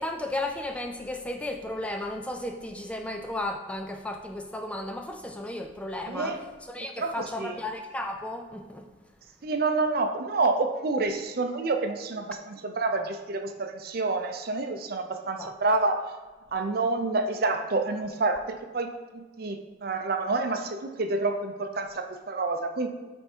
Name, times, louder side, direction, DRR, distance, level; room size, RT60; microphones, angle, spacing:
voice 1, 0.0-6.4 6.7-8.9 15.4-15.5, left 1 dB, 5° left, 0.3 m, -34 dB
voice 2, 6.0-6.4 7.0-7.6 9.4-16.1 16.5-22.9, right 3 dB, 55° right, 0.6 m, -28 dB
8.6 x 3.6 x 4.4 m
head